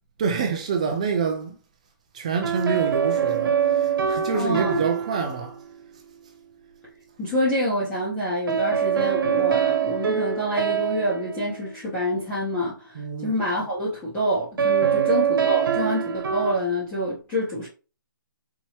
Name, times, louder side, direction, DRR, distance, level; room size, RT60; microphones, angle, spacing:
voice 1, 0.2-1.6 2.1-5.6 12.9-13.3 14.8-15.1, right 6 dB, 20° right, 0.3 m, -27 dB
sound 1, 2.4-5.8 8.5-12.3 14.6-16.6, right 8 dB, 85° right, 1.0 m, -24 dB
voice 2, 4.3-4.8 7.2-17.7, equal, 10° left, 0.9 m, -27 dB
4.4 x 3.0 x 2.9 m
hypercardioid pair, 170°, 11 cm